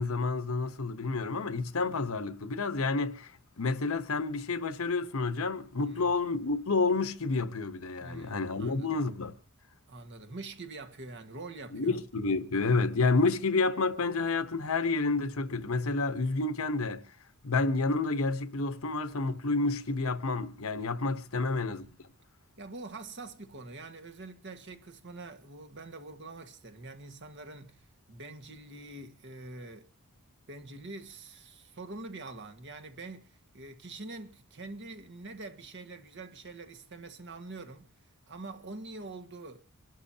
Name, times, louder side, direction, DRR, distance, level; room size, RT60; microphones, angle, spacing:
voice 1, 0.0-3.3 3.6-9.3 11.7-17.1 17.4-21.9, left 3 dB, 65° left, 1.1 m, -29 dB
voice 2, 8.0-9.0 9.9-12.0 21.3-21.7 22.6-29.9 30.5-37.9 38.3-39.6, right 3 dB, 55° right, 1.6 m, -45 dB
26.5 x 12.0 x 2.9 m
head